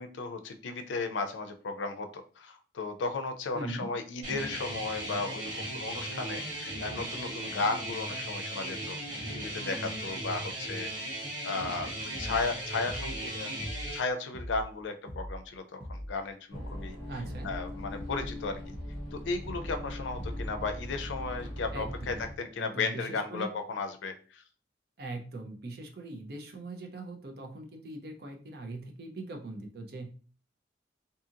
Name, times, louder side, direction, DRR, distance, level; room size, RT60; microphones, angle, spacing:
voice 1, 0.0-9.0 9.3-11.9 12.2-13.5 13.9-17.0 17.4-18.6 19.1-24.4, left 3 dB, 90° left, 7 dB, 0.4 m, -35 dB
voice 2, 3.5-3.9 17.1-17.5 21.7-22.2 22.6-23.5 25.0-30.1, right 2 dB, 55° right, 3 dB, 0.6 m, -41 dB
sound 1, 4.2-14.0, right 1 dB, 85° right, 1.3 m, -37 dB
sound 2, 12.1-12.5 12.9-13.3 13.6-14.0 14.3-14.7 15.1-15.4 15.8-16.2 16.5-16.9 17.3-17.6 18.0-18.4 18.7-19.1 19.5-19.8 20.2-20.6, equal, 10° right, 0.4 m, -41 dB
sound 3, 16.5-22.3, equal, 30° right, 1.1 m, -41 dB
2.7 x 2.7 x 2.5 m, 0.39 s
head